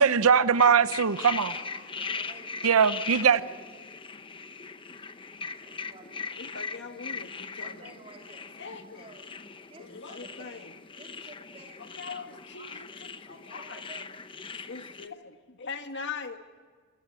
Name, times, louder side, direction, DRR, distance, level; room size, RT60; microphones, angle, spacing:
voice 1, 0.0-1.5 2.6-3.4, right 6 dB, 80° right, 0.7 m, -21 dB
sound 1, 0.6-15.1, left 5 dB, 25° left, 0.8 m, -40 dB
voice 2, 1.5-2.7 3.1-3.7 5.6-6.3 7.6-8.5 8.9-9.2 9.7-10.7 11.0-12.3 12.6-12.8 13.3-14.1, right 2 dB, 30° right, 3.5 m, -51 dB
voice 3, 6.3-8.0 8.6-9.1 9.8-10.7 11.8-13.8 14.5-16.4, left 5 dB, 55° left, 1.7 m, -42 dB
25.5 x 16.5 x 9.4 m
head